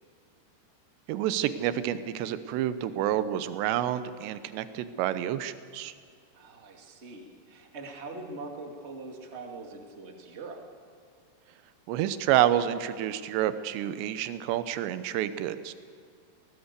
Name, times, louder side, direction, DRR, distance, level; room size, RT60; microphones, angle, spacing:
voice 1, 1.1-5.9 11.9-15.7, right 11 dB, 80° right, 13 dB, 3.1 m, -28 dB
voice 2, 6.3-10.6, right 3 dB, 25° right, 3 dB, 1.4 m, -42 dB
19.0 x 18.5 x 8.2 m, 2.3 s
omnidirectional pair, 5.0 m